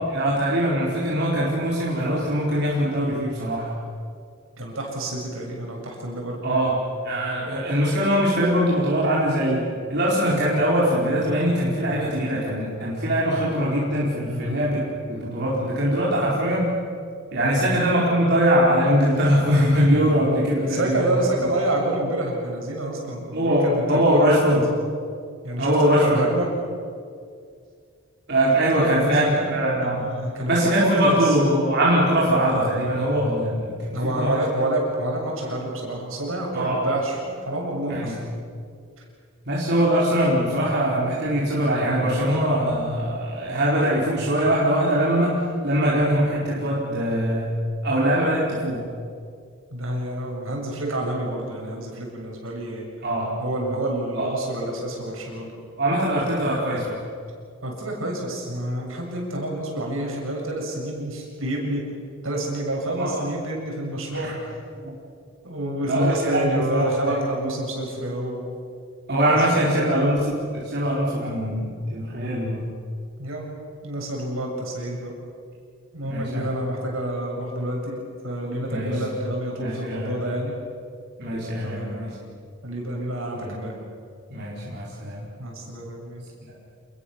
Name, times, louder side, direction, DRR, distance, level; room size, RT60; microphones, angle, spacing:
voice 1, 0.0-3.7 6.4-6.8 7.0-9.6 9.9-14.8 15.1-16.7 17.3-21.5 23.3-24.6 25.6-26.3 28.3-30.1 30.5-34.3 36.5-36.8 37.9-38.2 39.4-47.5 47.8-48.8 53.0-53.3 54.1-54.3 55.8-57.0 63.0-63.2 64.1-64.3 65.9-67.1 67.4-67.6 69.1-72.6 76.0-76.5 78.7-79.0 79.6-80.1 81.2-82.1 83.3-83.7 84.3-85.2 86.4-86.5, equal, 55° right, -6 dB, 4.6 m, -22 dB
voice 2, 4.6-6.4 14.3-14.6 17.4-17.8 20.7-24.3 24.5-24.6 25.4-26.5 28.7-29.5 29.8-31.6 33.9-38.2 49.7-52.9 53.4-55.5 57.6-61.8 62.2-64.3 65.4-68.5 69.2-69.9 73.2-73.5 73.8-75.1 75.9-78.0 78.2-80.6 81.6-82.2 82.6-83.8 85.4-86.3, right 1 dB, 75° right, -1 dB, 7.4 m, -28 dB
28.0 x 22.0 x 7.1 m, 2.3 s
head